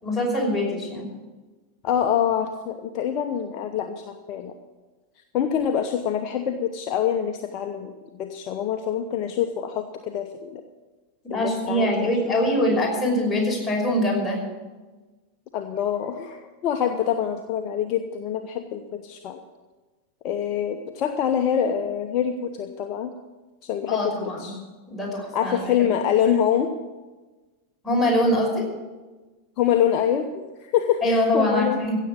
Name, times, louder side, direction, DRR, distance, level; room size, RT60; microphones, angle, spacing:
voice 1, 0.0-1.1 11.3-14.4 23.9-24.6 24.9-25.9 27.8-28.7 31.0-32.0, left 1 dB, 5° left, -3 dB, 5.6 m, -23 dB
voice 2, 1.8-4.5 5.3-7.9 8.2-10.6 11.3-12.1 15.5-19.4 20.2-23.1 23.6-24.6 25.3-26.7 29.6-31.8, left 9 dB, 40° left, 5 dB, 0.9 m, -25 dB
16.5 x 7.6 x 8.5 m, 1.2 s
figure-of-eight pair, 90°, 0 cm